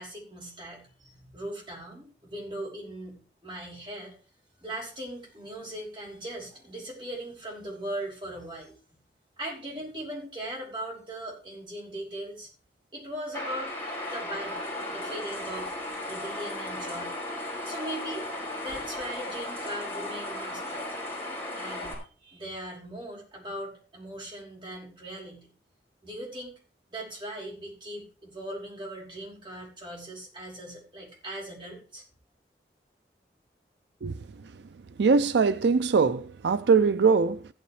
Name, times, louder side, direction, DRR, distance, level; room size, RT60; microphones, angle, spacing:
voice 1, 0.0-4.1 4.6-8.8 9.4-12.5 12.9-13.8 14.1-14.6 14.9-15.7 16.1-17.2 17.6-18.3 18.6-20.9 21.6-25.5 26.0-26.5 26.9-32.0, right 1 dB, 25° right, 5.3 m, -39 dB
sound 1, 13.3-21.9, left 1 dB, 10° left, 4.8 m, -35 dB
voice 2, 35.0-37.5, right 5 dB, 80° right, 0.4 m, -22 dB
15.0 x 9.6 x 3.2 m
head